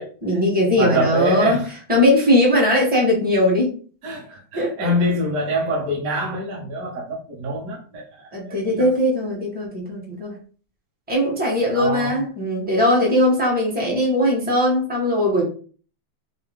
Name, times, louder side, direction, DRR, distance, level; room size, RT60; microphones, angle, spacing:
voice 1, 0.2-1.6 1.9-3.7 4.6-4.9 8.3-10.3 11.1-15.4, left 1 dB, 10° right, 0.5 m, -19 dB
voice 2, 0.7-1.6 4.0-8.0 8.5-8.9 11.7-12.2, equal, 50° right, 1.2 m, -25 dB
4.6 x 2.0 x 3.4 m
omnidirectional pair, 2.4 m